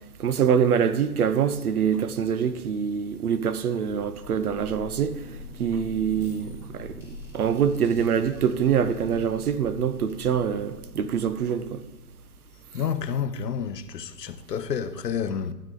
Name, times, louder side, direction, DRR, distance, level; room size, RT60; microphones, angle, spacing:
voice 1, 0.2-5.2 5.6-7.0 7.3-11.8, right 7 dB, 65° right, 0.8 m, -24 dB
sound 1, 3.7-12.2, left 1 dB, 5° right, 1.2 m, -43 dB
voice 2, 12.7-15.5, left 7 dB, 85° left, 0.9 m, -29 dB
13.0 x 7.8 x 3.8 m
hypercardioid pair, 150°, 48 cm